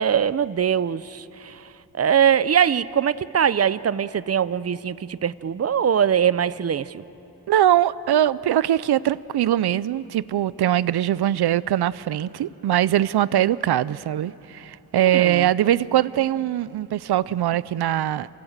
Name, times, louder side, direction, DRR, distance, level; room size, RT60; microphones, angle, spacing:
voice 1, 0.0-1.6 2.0-7.0 15.0-15.5, right 8 dB, 40° right, 0.5 m, -22 dB
voice 2, 7.5-18.3, right 12 dB, 85° right, 0.5 m, -22 dB
28.5 x 23.5 x 6.6 m
wide cardioid pair, 115°, 38 cm